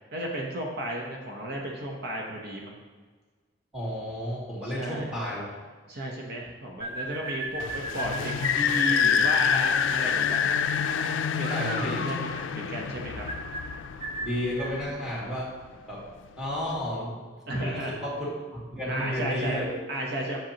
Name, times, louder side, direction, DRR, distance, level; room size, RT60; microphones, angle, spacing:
voice 1, 0.1-2.8 4.6-5.1 5.9-10.5 11.3-13.2 17.5-18.0 18.9-20.4, right 1 dB, 60° right, -1 dB, 0.9 m, -34 dB
voice 2, 3.7-5.5 11.5-12.1 14.1-15.6 15.9-16.1 16.4-18.3 18.7-19.7, equal, 5° right, -6 dB, 2.3 m, -32 dB
sound 1, 6.8-14.8, right 2 dB, 30° right, 0.9 m, -36 dB
sound 2, 7.6-14.9, left 7 dB, 85° left, 0.4 m, -27 dB
7.7 x 7.3 x 2.9 m, 1.4 s
head